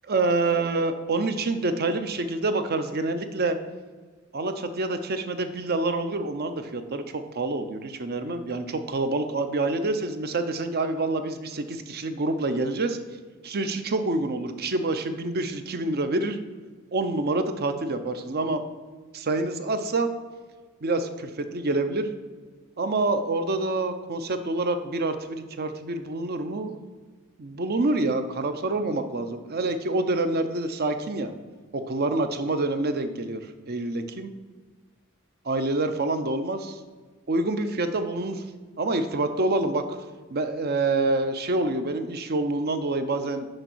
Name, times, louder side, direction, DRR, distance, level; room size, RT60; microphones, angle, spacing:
voice 1, 0.1-3.6 4.3-13.0 13.4-16.4 16.9-18.6 19.1-20.1 20.8-22.1 22.8-26.8 27.4-31.3 31.7-33.4 33.7-34.3 35.4-36.8 37.3-38.4 38.8-39.8 40.3-43.5, right 2 dB, 50° right, 9 dB, 0.7 m, -27 dB
6.5 x 5.6 x 6.2 m, 1.4 s
head